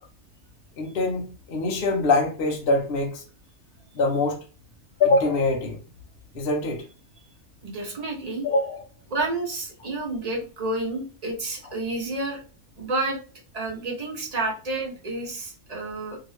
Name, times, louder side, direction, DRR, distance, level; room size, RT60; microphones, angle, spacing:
voice 1, 0.8-3.2 3.9-4.4 5.0-5.8 6.3-6.8 8.4-8.8, left 2 dB, 50° left, 1 dB, 0.7 m, -23 dB
voice 2, 7.6-8.4 9.1-12.4 12.8-13.2 13.5-16.2, right 2 dB, 35° right, 0 dB, 0.7 m, -30 dB
2.8 x 2.6 x 3.2 m, 0.35 s
omnidirectional pair, 1.5 m